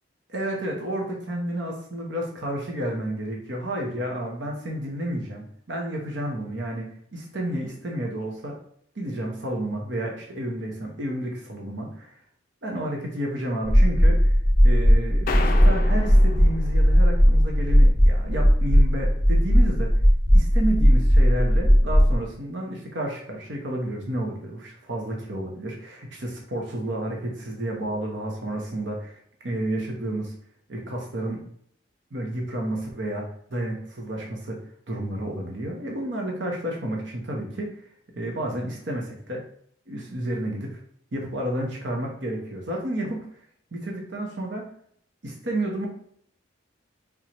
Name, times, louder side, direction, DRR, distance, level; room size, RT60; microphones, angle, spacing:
voice 1, 0.3-8.6 8.9-12.2 12.6-14.3 14.6-19.9 20.3-29.2 29.4-30.3 30.7-31.4 32.1-34.6 34.9-37.7 38.1-39.4 39.9-40.8 41.1-43.3 43.7-44.7 45.2-45.9, right 1 dB, 60° right, 0 dB, 1.0 m, -31 dB
sound 1, 13.6-22.1, equal, 40° right, 1.8 m, -17 dB
sound 2, 15.3-17.7, left 3 dB, 45° left, 0.4 m, -33 dB
4.5 x 3.8 x 2.9 m, 0.64 s
head